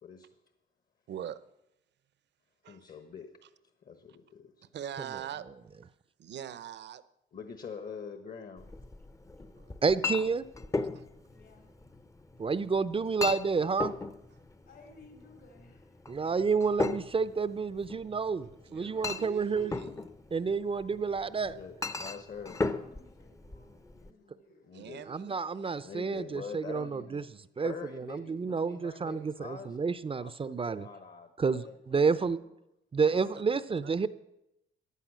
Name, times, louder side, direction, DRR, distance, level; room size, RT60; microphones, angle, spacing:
voice 1, 1.1-1.4 2.6-2.8 4.7-5.5 6.2-7.0 9.4-9.7 10.9-11.0 18.7-20.1 24.7-25.4 33.1-33.2 33.8-34.1, right 10 dB, 60° right, 15 dB, 0.8 m, -42 dB
voice 2, 2.6-3.5 3.8-4.7 7.3-8.7 21.4-22.6 23.7-24.3 24.6-25.1 25.8-27.3 27.6-29.8 30.2-32.1 33.1-33.6, left 6 dB, 45° left, 9 dB, 1.2 m, -45 dB
Chink clink, 8.6-24.1, left 3 dB, 15° left, 0.7 m, -38 dB
voice 3, 9.8-10.5 12.4-13.9 16.1-19.7 20.3-21.6 25.1-27.2 27.6-30.9 31.4-32.4 32.9-34.1, right 5 dB, 30° right, 15 dB, 0.6 m, -30 dB
voice 4, 11.3-11.7 14.7-16.1 22.4-24.7 31.8-32.6, left 3 dB, 75° left, 2 dB, 3.8 m, -58 dB
15.0 x 9.8 x 6.2 m, 0.86 s
cardioid pair, 90°, 20 cm